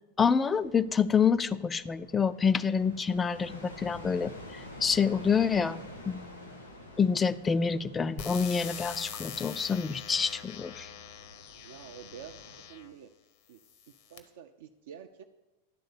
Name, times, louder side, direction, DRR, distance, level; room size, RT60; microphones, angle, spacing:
voice 1, 0.2-6.5 7.0-10.9, left 6 dB, 15° left, 15 dB, 0.3 m, -27 dB
sound 1, 0.5-12.6, left 1 dB, 85° left, 1.9 m, -49 dB
sound 2, 8.2-12.9 13.6-14.2, left 8 dB, 50° left, 0.9 m, -43 dB
voice 2, 11.6-12.3 12.7-13.1 13.5-13.6 14.1-15.2, right 9 dB, 55° right, 4 dB, 0.4 m, -47 dB
10.5 x 3.9 x 6.7 m, 1.1 s
figure-of-eight pair, 90°, 0 cm